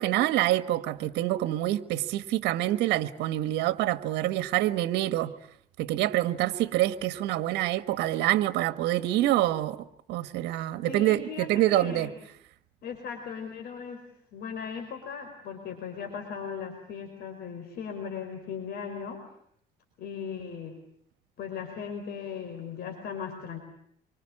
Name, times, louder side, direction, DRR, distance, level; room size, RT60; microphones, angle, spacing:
voice 1, 0.0-5.3 5.8-12.1, right 15 dB, 85° right, 1.4 m, -26 dB
voice 2, 10.9-12.2 12.8-14.0 14.3-19.2 20.0-20.7 21.4-23.6, left 6 dB, 70° left, 4.9 m, -38 dB
27.0 x 24.5 x 8.7 m
cardioid pair, 110°, 17 cm